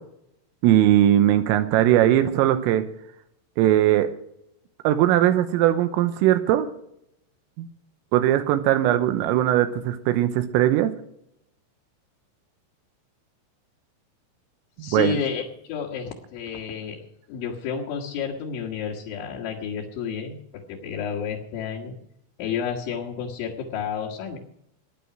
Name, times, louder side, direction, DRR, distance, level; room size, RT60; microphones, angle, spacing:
voice 1, 0.6-2.8 3.6-4.1 4.9-6.7 7.6-7.7 8.1-10.9 14.8-15.2, right 12 dB, 85° right, 9 dB, 3.5 m, -19 dB
voice 2, 14.8-17.0 17.3-22.0 22.4-24.4, left 7 dB, 70° left, -3 dB, 3.8 m, -31 dB
15.5 x 10.5 x 6.1 m, 0.75 s
omnidirectional pair, 5.8 m